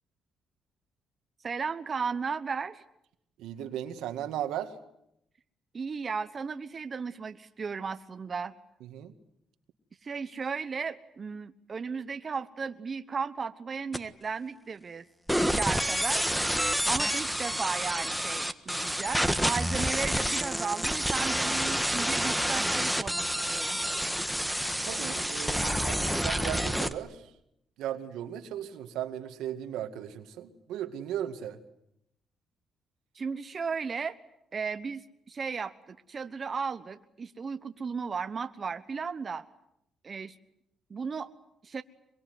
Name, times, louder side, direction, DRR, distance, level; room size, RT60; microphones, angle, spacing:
voice 1, 1.4-2.8 5.7-8.5 10.0-15.0 15.4-16.3 16.9-23.8 33.1-34.2 34.5-39.5 40.0-40.3 40.9-41.3 41.6-41.8, right 5 dB, 40° right, 9 dB, 1.1 m, -35 dB
voice 2, 3.4-4.7 8.8-9.1 24.8-27.3 27.8-31.6, right 11 dB, 90° right, 8 dB, 2.1 m, -36 dB
sound 1, 13.9-14.0 15.3-26.9, equal, ahead, 1.6 m, -28 dB
24.0 x 22.5 x 9.5 m, 0.79 s
cardioid pair, 90°, 0 cm